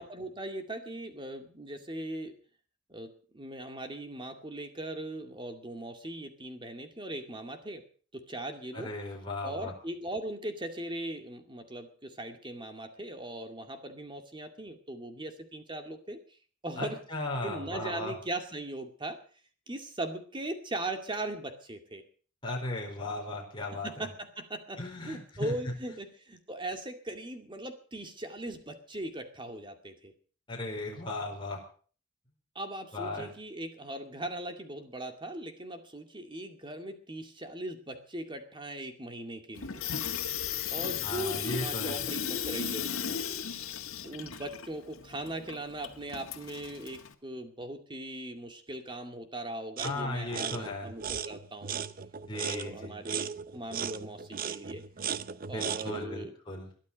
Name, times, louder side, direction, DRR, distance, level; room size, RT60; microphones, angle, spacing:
voice 1, 0.0-2.3 2.9-7.8 8.1-8.9 9.4-16.2 16.6-17.0 17.4-19.2 19.7-22.0 23.8-24.8 25.1-30.1 32.6-39.8 40.7-43.2 44.0-51.8 52.4-54.8 55.5-56.3, right 1 dB, 25° right, 6 dB, 2.2 m, -39 dB
voice 2, 8.7-9.7 16.8-18.1 22.4-24.1 24.8-25.7 30.5-31.6 32.9-33.3 41.0-42.0 49.8-50.9 52.3-53.0 55.5-56.7, left 2 dB, 25° left, -1 dB, 4.6 m, -36 dB
Water tap faucet / Sink (filling or washing), 39.6-47.1, left 8 dB, 90° left, 1.7 m, -36 dB
sound 1, 49.8-50.0 50.3-56.1, right 7 dB, 45° right, 0.6 m, -37 dB
22.0 x 11.5 x 5.2 m, 0.43 s
head